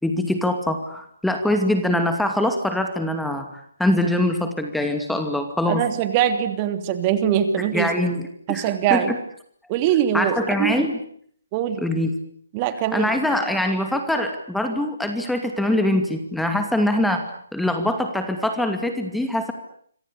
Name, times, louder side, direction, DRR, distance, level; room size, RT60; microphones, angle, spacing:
voice 1, 0.0-5.8 7.6-9.2 10.1-10.9 11.8-12.2 12.9-19.5, left 1 dB, ahead, 6 dB, 2.5 m, -23 dB
voice 2, 5.7-7.9 8.5-9.1 9.7-10.8 11.5-11.8 12.5-13.1, right 10 dB, 25° right, 10 dB, 3.1 m, -22 dB
27.5 x 24.0 x 8.5 m, 0.63 s
figure-of-eight pair, 145°, 0 cm